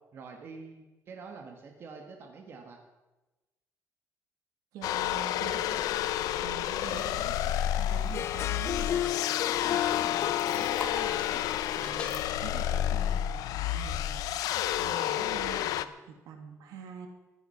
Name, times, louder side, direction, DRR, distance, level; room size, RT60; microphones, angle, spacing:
voice 1, 0.1-2.8 5.4-5.8 6.9-7.3 12.2-12.4, right 4 dB, 40° right, 3 dB, 1.8 m, -46 dB
voice 2, 4.7-5.8 6.4-7.2 7.8-17.1, right 7 dB, 80° right, 5 dB, 2.4 m, -46 dB
sound 1, 4.8-15.8, left 12 dB, 80° left, 0.7 m, -30 dB
sound 2, 6.4-12.2, left 3 dB, 20° left, 1.5 m, -45 dB
Harp, 8.0-13.4, left 11 dB, 45° left, 0.4 m, -34 dB
15.0 x 12.0 x 5.7 m, 1.1 s
cardioid pair, 170°, 6 cm